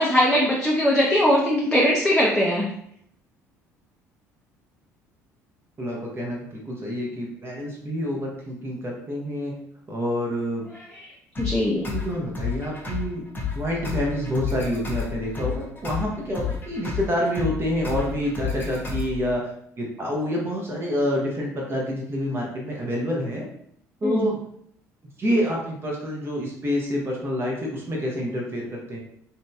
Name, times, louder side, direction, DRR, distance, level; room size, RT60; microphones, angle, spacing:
voice 1, 0.0-2.6 11.0-11.1 11.4-11.9 24.0-24.3, equal, 5° left, -4 dB, 0.6 m, -20 dB
voice 2, 5.8-9.5 9.9-10.6 11.7-13.2 13.6-19.5 19.8-23.4 24.0-24.4 25.2-29.0, equal, 30° right, -2 dB, 0.7 m, -27 dB
sound 1, 11.3-19.3, left 6 dB, 25° left, 0.9 m, -31 dB
2.9 x 2.7 x 2.2 m, 0.69 s
figure-of-eight pair, 55°, 9 cm